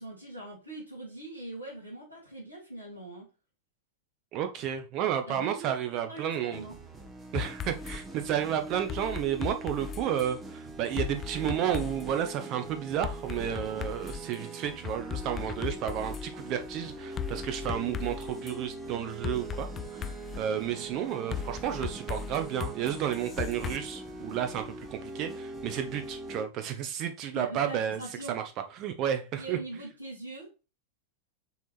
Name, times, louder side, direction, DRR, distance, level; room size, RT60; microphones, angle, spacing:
voice 1, 0.0-3.3 5.3-5.7 6.1-6.7 27.3-28.4 29.4-30.5, right 2 dB, 90° right, -7 dB, 2.9 m, -42 dB
voice 2, 4.3-6.6 7.3-20.1 20.4-28.0 28.3-28.4 28.8-29.6, right 10 dB, 40° right, 7 dB, 1.2 m, -32 dB
sound 1, 6.5-26.5, right 2 dB, 15° right, 1.3 m, -42 dB
sound 2, 7.3-8.0 8.9-10.3 11.0-12.1 13.0-14.3 14.8-16.3 17.2-18.6 19.2-20.4 21.3-23.8, left 9 dB, 25° left, 0.4 m, -37 dB
6.1 x 3.8 x 4.3 m, 0.31 s
figure-of-eight pair, 90°, 0 cm